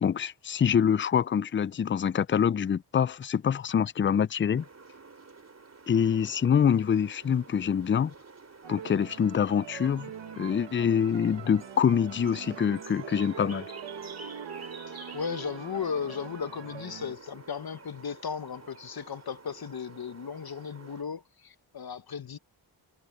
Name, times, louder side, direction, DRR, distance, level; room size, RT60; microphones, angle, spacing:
voice 1, 0.0-4.6 5.9-8.1 8.7-10.1 10.4-13.6, left 7 dB, 30° left, 0.4 m, -25 dB
sound 1, 4.5-21.0, right 4 dB, 35° right, 3.5 m, -48 dB
sound 2, 8.6-17.2, right 9 dB, 75° right, 1.5 m, -44 dB
voice 2, 14.9-22.4, left 6 dB, 55° left, 1.4 m, -36 dB
cardioid pair, 50°, 43 cm